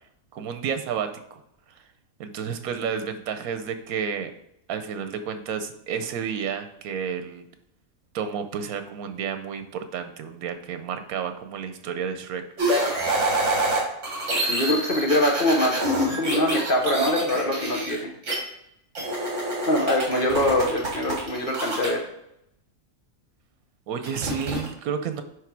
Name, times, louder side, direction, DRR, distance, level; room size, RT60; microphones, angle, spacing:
voice 1, 0.3-1.4 1.7-1.8 2.2-4.3 4.7-7.4 8.1-12.5 23.9-25.2, right 7 dB, 85° right, 9 dB, 1.2 m, -31 dB
sound 1, 12.6-18.4 19.0-21.9 24.0-24.7, right 1 dB, 55° right, 2.1 m, -26 dB
voice 2, 14.5-15.8 16.2-18.1 19.7-22.0, left 1 dB, 40° left, 1 dB, 1.1 m, -23 dB
9.8 x 3.3 x 4.6 m, 0.78 s
omnidirectional pair, 1.5 m